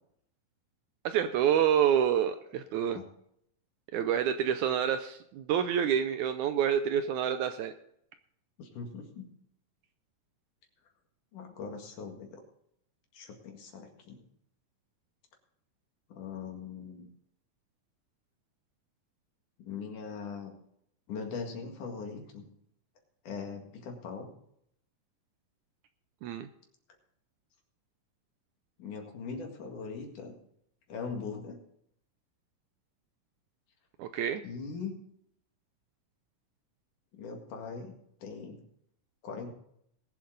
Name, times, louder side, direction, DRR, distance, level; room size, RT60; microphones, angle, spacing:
voice 1, 1.1-3.0 3.9-7.7 26.2-26.5 34.0-34.4, right 9 dB, 80° right, 9 dB, 1.8 m, -28 dB
voice 2, 8.6-9.3 11.3-12.4 13.1-14.2 16.1-17.1 19.6-20.5 21.1-22.4 23.2-24.3 28.8-30.4 30.9-31.6 34.4-34.9 37.1-37.9 38.2-38.6 39.2-39.5, left 5 dB, 65° left, 2 dB, 3.4 m, -40 dB
21.0 x 7.7 x 3.9 m, 0.71 s
omnidirectional pair, 3.9 m